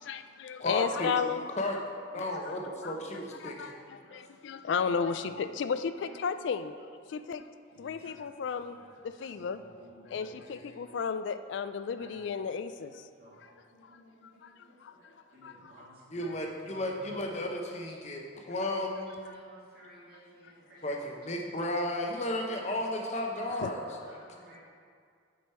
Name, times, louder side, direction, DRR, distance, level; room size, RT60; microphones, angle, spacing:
voice 1, 0.0-1.4 2.2-2.5 2.8-6.7 7.1-7.5 7.8-8.8 9.0-9.6 10.1-13.0 13.8-14.0 14.4-15.1 15.4-15.9 16.2-16.3 23.6-23.7, left 6 dB, 65° left, 11 dB, 0.3 m, -34 dB
voice 2, 0.6-1.1 1.6-1.8 2.1-3.7 10.1-10.9 16.1-19.2 20.8-24.2, left 1 dB, 35° left, 1 dB, 0.8 m, -34 dB
voice 3, 3.4-4.6 5.1-5.2 6.0-6.2 7.7-8.2 8.5-9.0 9.3-10.5 12.0-12.3 13.2-16.3 16.6-17.1 18.6-18.7 19.1-21.0 22.3-22.9 23.3-24.6, right 1 dB, 50° right, -6 dB, 1.8 m, -56 dB
7.7 x 5.1 x 4.3 m, 2.2 s
head